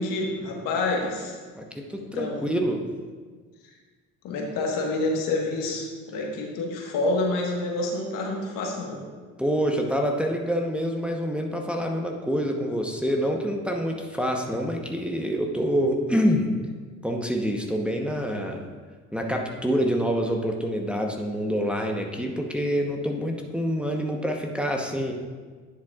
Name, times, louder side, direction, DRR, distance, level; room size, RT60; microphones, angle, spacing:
voice 1, 0.0-1.3 2.0-2.5 4.2-9.1, left 2 dB, 70° left, 0 dB, 1.4 m, -28 dB
voice 2, 1.5-2.8 9.4-16.5 17.0-18.7 19.1-25.1, equal, 5° right, 1 dB, 0.9 m, -26 dB
10.5 x 7.3 x 2.4 m, 1.5 s
hypercardioid pair, 65°, 34 cm